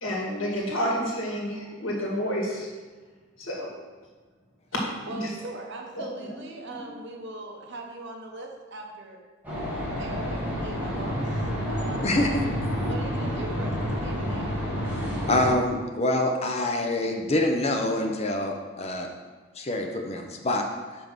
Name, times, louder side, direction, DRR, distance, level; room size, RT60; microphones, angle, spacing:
voice 1, 0.0-2.7 3.4-3.7 4.7-4.8 5.1-5.3 6.0-6.4 6.7-6.9, equal, 85° left, -3 dB, 2.1 m, -30 dB
voice 2, 5.1-9.2 10.0-11.2 11.7-12.5 12.8-14.7, right 2 dB, 65° right, 1 dB, 1.1 m, -40 dB
sound 1, 9.4-15.5, equal, 10° right, 2.3 m, -29 dB
voice 3, 12.0-12.4 15.3-19.1 19.6-20.6, left 1 dB, 35° left, 2 dB, 0.8 m, -25 dB
5.6 x 5.3 x 6.0 m, 1.4 s
head